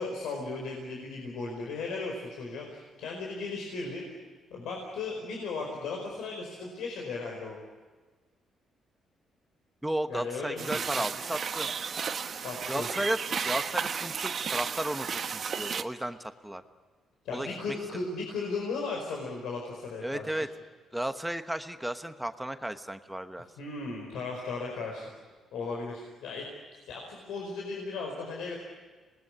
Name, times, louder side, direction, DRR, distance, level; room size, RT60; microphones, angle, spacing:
voice 1, 0.0-4.0 4.5-7.6 10.1-10.7 12.3-12.9 17.2-20.4 23.6-25.1 25.5-26.4 26.8-28.5, left 3 dB, 85° left, 0 dB, 4.8 m, -36 dB
voice 2, 9.8-11.7 12.7-13.2 13.4-16.6 17.3-17.5 20.0-20.5 20.9-23.5, right 1 dB, 5° right, 8 dB, 1.1 m, -34 dB
sound 1, 10.6-15.8, right 6 dB, 50° right, 1.2 m, -33 dB
26.0 x 20.0 x 9.8 m, 1.4 s
cardioid pair, 90°, 0 cm